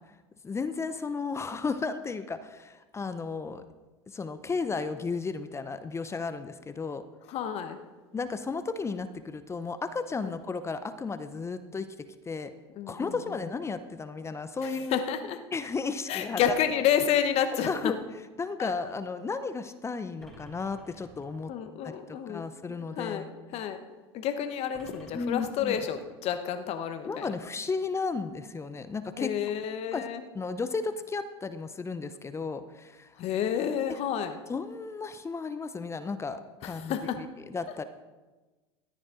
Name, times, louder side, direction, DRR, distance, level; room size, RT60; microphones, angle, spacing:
voice 1, 0.4-3.6 4.1-7.0 8.1-12.5 12.9-15.0 15.5-16.4 17.7-18.0 18.4-21.5 21.8-23.3 25.1-25.8 27.1-29.3 29.9-30.1 30.3-33.1 34.5-37.8, left 4 dB, 20° left, 11 dB, 0.7 m, -34 dB
voice 2, 7.3-7.8 10.2-10.3 12.8-13.4 14.6-15.4 16.1-17.9 18.6-18.7 21.5-22.4 22.7-23.2 23.5-23.8 24.1-27.3 29.2-30.2 33.2-34.4 36.6-37.2, left 9 dB, 50° left, 8 dB, 1.0 m, -30 dB
sound 1, 20.2-21.7 24.7-26.2, equal, ahead, 3.4 m, -53 dB
14.0 x 10.0 x 3.8 m, 1.2 s
hypercardioid pair, 90°, 14 cm